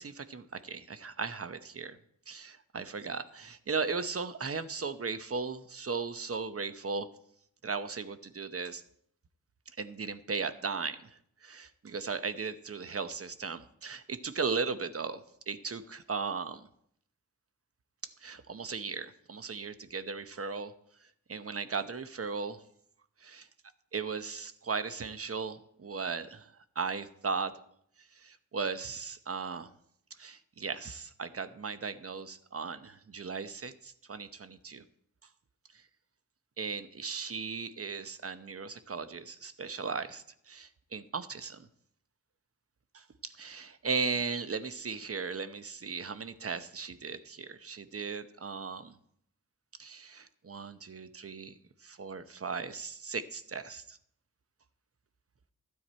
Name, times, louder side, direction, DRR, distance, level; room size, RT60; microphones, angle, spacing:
voice 1, 0.0-2.0 2.3-7.1 7.6-8.8 9.8-16.7 18.0-20.7 21.3-22.6 23.2-23.5 23.9-27.6 28.2-29.7 30.2-34.8 36.6-41.7 42.9-48.9 49.8-51.5 51.8-54.0, right 5 dB, 45° right, 11 dB, 0.9 m, -37 dB
12.5 x 9.3 x 4.4 m, 0.69 s
cardioid pair, 50°, 33 cm